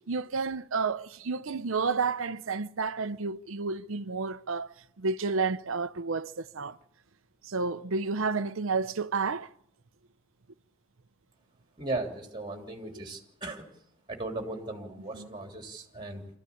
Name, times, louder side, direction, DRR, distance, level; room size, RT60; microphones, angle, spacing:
voice 1, 0.1-6.8 7.4-9.5 15.1-15.3, right 4 dB, 70° right, 0.7 m, -31 dB
voice 2, 11.8-13.7 14.1-16.4, right 2 dB, 20° right, 3.1 m, -37 dB
24.5 x 14.5 x 8.6 m
head